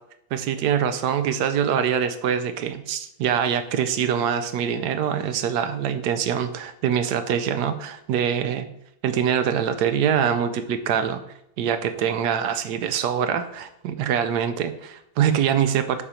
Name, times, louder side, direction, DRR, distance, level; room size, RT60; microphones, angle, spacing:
voice 1, 0.3-8.7 9.0-11.2 11.6-16.0, right 8 dB, 85° right, 10 dB, 1.3 m, -24 dB
6.9 x 4.3 x 5.0 m, 0.76 s
omnidirectional pair, 1.7 m